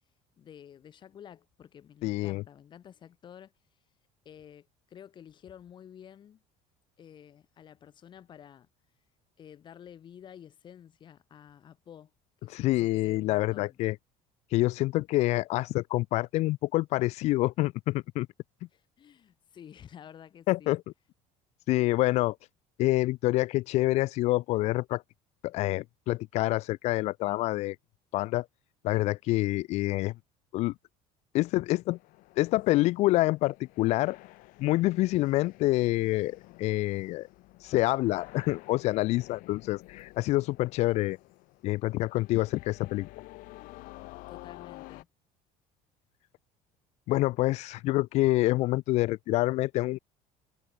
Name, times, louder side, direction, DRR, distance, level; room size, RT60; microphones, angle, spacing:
voice 1, 0.4-3.5 4.3-6.4 7.0-8.7 9.4-12.1 12.4-13.8 18.7-20.8 44.3-45.1, left 9 dB, 30° left, 5.4 m, -51 dB
voice 2, 2.0-2.4 12.5-14.0 14.5-18.3 20.5-20.8 21.7-22.3 22.8-25.0 25.4-27.8 28.1-28.4 28.8-30.1 30.5-30.7 31.3-32.0 32.4-34.2 34.6-37.3 37.6-41.2 41.6-43.1 47.1-50.0, left 18 dB, 50° left, 0.4 m, -27 dB
sound 1, 31.9-45.0, left 21 dB, 65° left, 5.0 m, -51 dB
cardioid pair, 170°, 15 cm